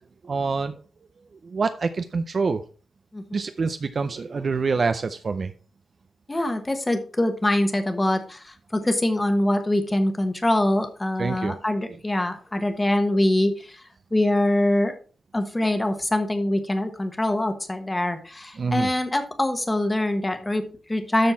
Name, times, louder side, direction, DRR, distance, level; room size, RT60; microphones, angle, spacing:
voice 1, 0.2-0.8 1.4-2.6 3.3-5.5 11.2-11.5 18.6-18.9, right 4 dB, 40° right, 9 dB, 0.5 m, -26 dB
voice 2, 6.3-14.9 15.3-21.3, left 1 dB, 15° left, 7 dB, 1.2 m, -24 dB
13.0 x 4.4 x 4.3 m, 0.39 s
wide cardioid pair, 150°, 0 cm